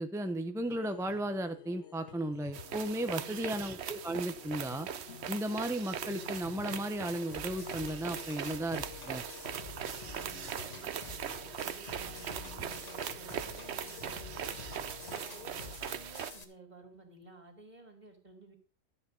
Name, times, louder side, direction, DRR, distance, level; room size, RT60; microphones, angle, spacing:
voice 1, 0.0-4.9 5.3-9.2, right 1 dB, 5° right, 9 dB, 0.4 m, -35 dB
sound 1, 0.6-15.7, left 9 dB, 60° left, 1.2 m, -52 dB
sound 2, 2.5-16.3, right 9 dB, 60° right, 0.9 m, -41 dB
voice 2, 3.0-3.6 9.7-11.0 11.4-14.6 15.0-18.6, right 3 dB, 30° right, 3 dB, 2.9 m, -54 dB
sound 3, 7.3-16.4, left 3 dB, 30° left, 1.6 m, -49 dB
12.5 x 8.0 x 5.2 m, 0.36 s
omnidirectional pair, 1.4 m